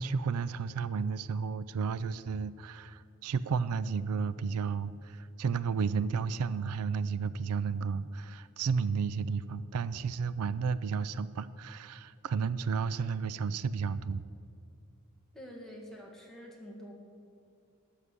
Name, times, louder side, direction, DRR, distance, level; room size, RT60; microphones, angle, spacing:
voice 1, 0.0-14.2, right 5 dB, 85° right, 17 dB, 0.4 m, -32 dB
voice 2, 15.3-16.9, equal, ahead, -2 dB, 1.8 m, -47 dB
12.5 x 6.5 x 8.4 m, 2.4 s
head